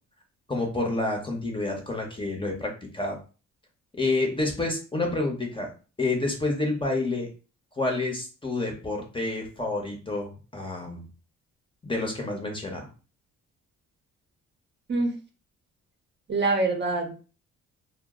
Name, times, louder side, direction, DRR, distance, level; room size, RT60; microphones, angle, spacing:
voice 1, 0.5-3.2 4.0-5.7 6.0-7.3 7.8-11.0 11.8-12.9, left 2 dB, 15° left, 1 dB, 0.8 m, -29 dB
voice 2, 16.3-17.1, right 3 dB, 35° right, 2 dB, 0.7 m, -25 dB
2.0 x 2.0 x 3.6 m, 0.34 s
cardioid pair, 90°, 30 cm